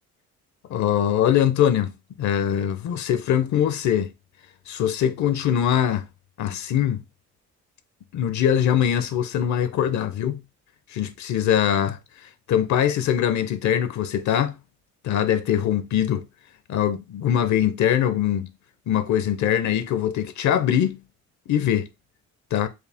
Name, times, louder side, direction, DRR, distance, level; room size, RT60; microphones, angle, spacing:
voice 1, 0.7-1.9 2.2-4.1 4.7-6.1 6.4-7.0 8.1-10.4 10.9-12.0 12.5-14.5 15.0-16.2 16.7-18.5 18.9-21.0 21.5-21.9 22.5-22.7, left 10 dB, 70° left, 0.6 m, -22 dB
4.7 x 2.4 x 3.4 m
cardioid pair, 90°, 30 cm